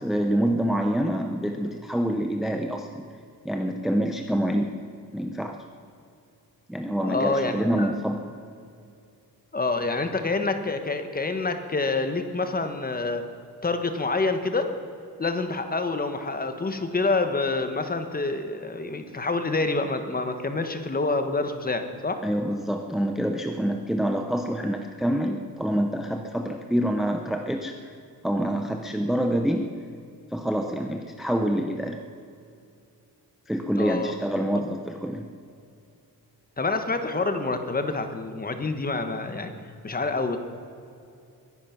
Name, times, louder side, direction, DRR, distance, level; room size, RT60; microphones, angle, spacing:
voice 1, 0.0-3.0 3.4-4.8 5.1-5.6 6.7-8.3 22.2-28.0 28.2-29.8 30.3-32.0 33.5-35.3, equal, ahead, 5 dB, 0.7 m, -26 dB
voice 2, 7.0-7.9 9.5-13.2 13.6-14.7 15.2-22.2 33.8-34.1 36.6-39.5 39.8-40.4, left 3 dB, 25° left, 8 dB, 1.2 m, -27 dB
22.0 x 10.5 x 5.9 m, 2.5 s
wide cardioid pair, 155°, 38 cm